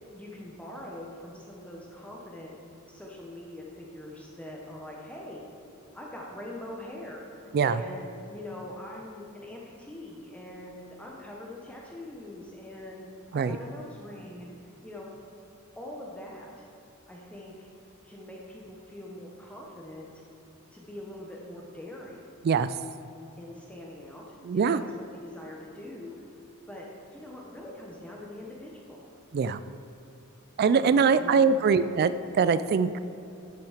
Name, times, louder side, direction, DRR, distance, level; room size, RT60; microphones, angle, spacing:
voice 1, 0.1-2.5 2.9-5.5 5.9-7.3 7.6-15.1 15.7-16.7 17.1-17.7 18.0-20.1 20.7-22.3 23.4-24.8 25.1-26.2 26.7-29.1 30.7-31.5 31.7-31.9, left 1 dB, 5° left, -3 dB, 0.9 m, -43 dB
voice 2, 24.4-24.8 29.3-29.6 30.6-32.9, right 5 dB, 45° right, 13 dB, 0.3 m, -23 dB
12.0 x 5.9 x 5.0 m, 2.9 s
head